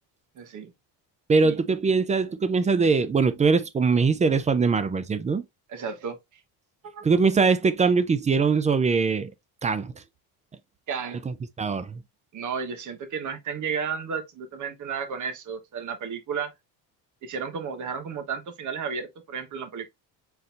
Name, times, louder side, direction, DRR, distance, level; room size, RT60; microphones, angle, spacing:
voice 1, 0.3-0.7 1.4-1.6 5.7-6.4 6.9-7.0 10.9-11.2 12.3-16.5 17.2-19.9, right 6 dB, 45° right, 1.2 m, -33 dB
voice 2, 1.3-5.4 7.0-9.3 9.6-9.9 11.3-12.0, right 4 dB, 20° right, 0.3 m, -22 dB
4.2 x 3.9 x 2.4 m
cardioid pair, 120°, 41 cm